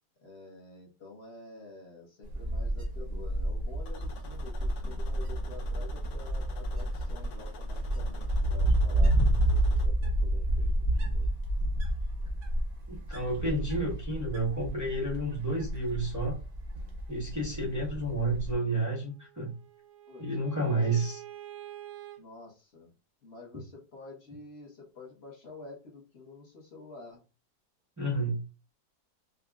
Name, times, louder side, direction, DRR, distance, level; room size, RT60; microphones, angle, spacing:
voice 1, 0.2-11.3 17.6-17.8 20.1-20.3 20.7-21.0 22.2-22.9 23.2-27.2, left 3 dB, 45° left, -2 dB, 1.0 m, -49 dB
Wind, 2.2-18.5, right 1 dB, 45° right, 0.8 m, -30 dB
sound 1, 3.8-9.9, left 5 dB, 75° left, 1.3 m, -50 dB
voice 2, 12.9-16.4 17.1-19.5 20.2-21.2 28.0-28.4, right 2 dB, 25° right, -5 dB, 0.4 m, -30 dB
Bowed string instrument, 19.1-22.2, right 12 dB, 70° right, 1.1 m, -47 dB
5.1 x 2.2 x 2.3 m, 0.32 s
omnidirectional pair, 1.9 m